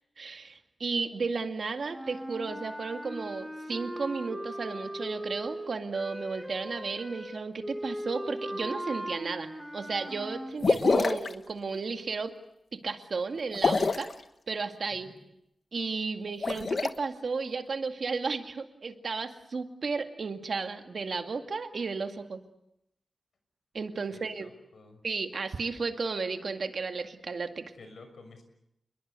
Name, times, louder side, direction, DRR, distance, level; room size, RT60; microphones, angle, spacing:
voice 1, 0.2-12.3 12.8-14.1 14.5-15.1 15.7-22.4 23.7-24.5 25.0-27.6, right 4 dB, 60° right, 6 dB, 2.2 m, -34 dB
sound 1, 1.9-10.6, equal, 5° right, 1.9 m, -39 dB
sound 2, 10.6-11.3 13.5-14.1 16.3-16.9, left 4 dB, 50° left, 1.2 m, -25 dB
voice 2, 24.1-25.0 27.7-28.4, left 3 dB, 80° left, 7 dB, 6.3 m, -51 dB
29.0 x 21.5 x 8.3 m, 0.80 s
wide cardioid pair, 155°, 0 cm